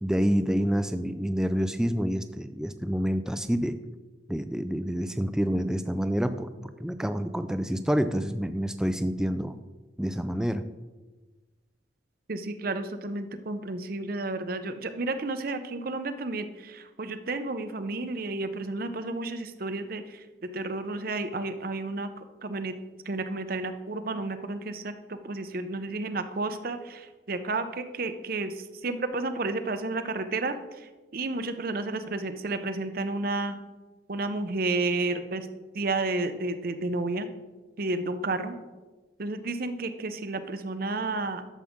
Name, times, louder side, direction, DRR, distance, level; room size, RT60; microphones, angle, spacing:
voice 1, 0.0-3.8 4.3-9.6 10.0-10.7, equal, 5° right, 10 dB, 0.4 m, -28 dB
voice 2, 12.3-22.7 23.1-33.6 34.1-35.5 35.7-37.3 37.8-38.6 39.2-41.5, right 2 dB, 50° right, 10 dB, 0.7 m, -31 dB
12.0 x 7.3 x 3.6 m, 1.2 s
head